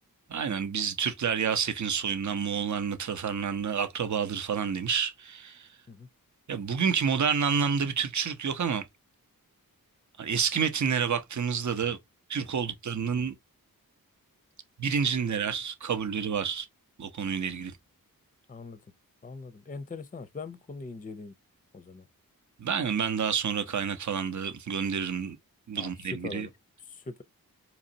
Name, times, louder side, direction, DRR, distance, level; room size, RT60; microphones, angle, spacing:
voice 1, 0.3-5.7 6.5-8.8 10.2-12.0 12.3-13.3 14.8-16.7 17.0-17.7 22.6-25.4 25.7-26.5, right 6 dB, 55° right, 0.7 m, -29 dB
voice 2, 18.5-18.8 19.2-21.3 21.7-22.1 25.8-25.9 26.2-26.5 26.9-27.2, left 4 dB, 25° left, 0.5 m, -41 dB
4.0 x 2.9 x 2.7 m
wide cardioid pair, 55°, 36 cm